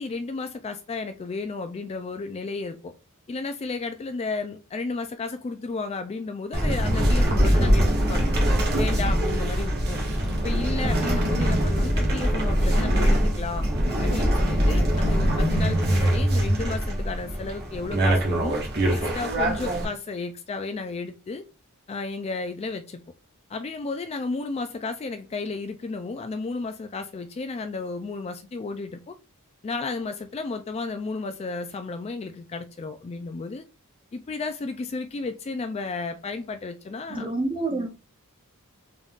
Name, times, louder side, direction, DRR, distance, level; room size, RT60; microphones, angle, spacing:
voice 1, 0.0-2.9 3.3-8.2 8.7-10.0 10.4-13.7 14.0-18.6 18.9-21.4 21.9-23.0 23.5-29.2 29.6-33.6 34.1-37.3 37.7-37.9, left 3 dB, 30° left, 0.3 m, -33 dB
sound 1, 6.5-19.8, equal, 50° right, 1.3 m, -23 dB
voice 2, 37.1-37.9, right 2 dB, 20° right, 0.7 m, -28 dB
3.9 x 3.6 x 2.4 m
head